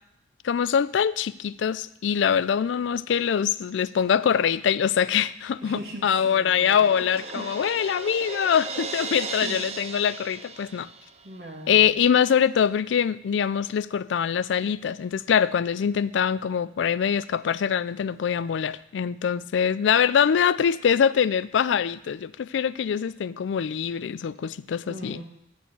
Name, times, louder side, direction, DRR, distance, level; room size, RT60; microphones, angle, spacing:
voice 1, 0.4-10.9 11.7-25.2, left 7 dB, 80° left, 0.3 m, -24 dB
Crash cymbal, 5.6-11.3, right 4 dB, 35° right, 0.6 m, -37 dB
voice 2, 5.6-6.8 7.3-7.8 9.4-9.8 11.2-11.8 24.9-25.2, right 1 dB, 55° right, 1.6 m, -39 dB
12.0 x 4.4 x 8.2 m
head